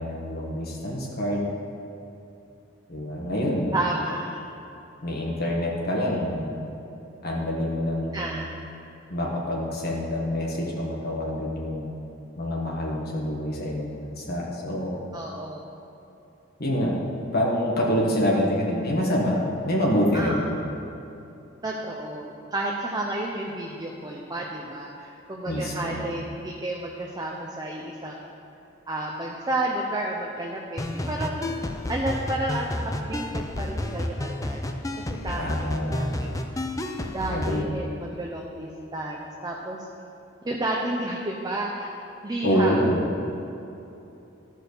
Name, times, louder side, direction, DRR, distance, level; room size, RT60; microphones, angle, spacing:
voice 1, 0.0-1.5 2.9-3.7 5.0-6.6 7.2-8.4 9.1-12.0 12.4-15.0 16.6-16.9 17.3-19.4 19.6-20.6 25.4-26.1 35.4-36.1 37.3-37.7 42.4-43.0, equal, 50° left, -2 dB, 1.5 m, -26 dB
voice 2, 3.7-4.4 8.1-8.5 15.1-15.7 20.1-20.5 21.6-28.3 28.9-31.6 31.9-34.6 35.0-36.4 37.1-39.9 40.4-41.9 42.2-42.8, right 1 dB, 20° right, -2 dB, 0.7 m, -31 dB
sound 1, 30.8-37.6, left 1 dB, 15° left, 0.5 m, -31 dB
13.0 x 4.6 x 6.6 m, 2.9 s
head